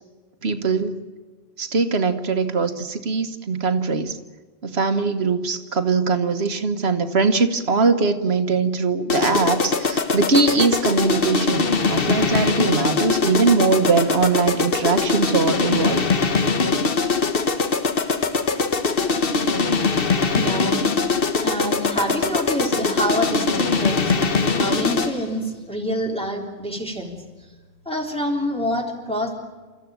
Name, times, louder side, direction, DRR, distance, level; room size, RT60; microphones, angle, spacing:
voice 1, 0.4-1.0 1.6-4.2 4.6-16.1, right 4 dB, 80° right, 7 dB, 1.5 m, -21 dB
sound 1, 9.1-25.3, left 4 dB, 65° left, 1.4 m, -22 dB
voice 2, 20.3-20.8 21.4-27.2 27.9-29.3, equal, 5° left, 0 dB, 3.6 m, -27 dB
29.0 x 14.0 x 9.1 m, 1.4 s
omnidirectional pair, 1.1 m